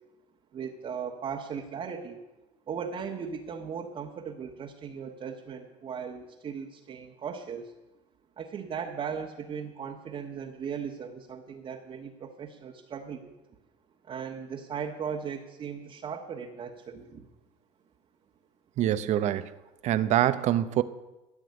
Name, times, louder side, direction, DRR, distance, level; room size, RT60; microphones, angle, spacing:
voice 1, 0.5-2.2 2.7-7.7 8.4-13.3 14.0-17.3, right 7 dB, 35° right, 0 dB, 1.4 m, -37 dB
voice 2, 18.8-19.5 19.8-20.8, right 12 dB, 50° right, 13 dB, 0.9 m, -25 dB
13.5 x 6.2 x 9.7 m, 1.0 s
supercardioid pair, 95°, 15 cm